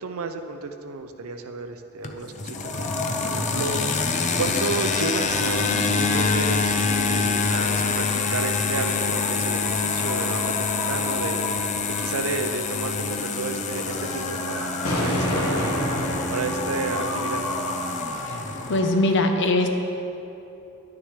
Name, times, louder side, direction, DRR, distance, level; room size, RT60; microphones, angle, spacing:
voice 1, 0.0-2.7 3.2-3.8 4.4-11.4 11.9-15.7 16.3-17.4, right 3 dB, 70° right, 7 dB, 0.6 m, -32 dB
sound 1, 2.0-18.8, left 4 dB, 35° left, 0.5 m, -26 dB
sound 2, 2.5-19.1, left 1 dB, 75° left, 1.6 m, -32 dB
voice 2, 18.7-19.7, left 2 dB, 55° left, 5 dB, 0.8 m, -21 dB
11.0 x 9.5 x 3.2 m, 2.9 s
head